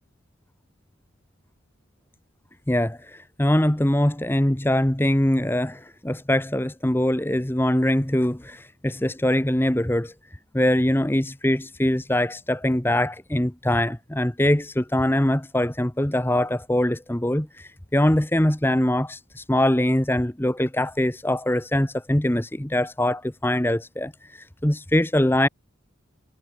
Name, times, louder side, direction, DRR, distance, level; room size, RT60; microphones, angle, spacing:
voice 1, 2.7-10.1 10.5-25.5, left 1 dB, 10° left, 0.9 m, -23 dB
head